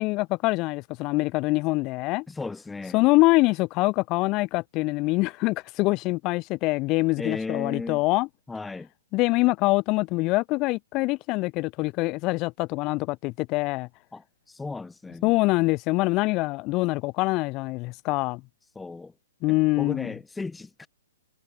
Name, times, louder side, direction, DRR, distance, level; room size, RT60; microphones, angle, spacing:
voice 1, 0.0-2.2 2.9-8.3 9.1-13.9 15.2-18.4 19.4-20.1, left 22 dB, 30° left, 6.4 m, -24 dB
voice 2, 2.3-3.0 7.2-8.0 8.5-8.9 14.1-15.3 18.8-19.1 19.8-20.9, left 3 dB, 5° left, 5.5 m, -35 dB
figure-of-eight pair, 120°, 0 cm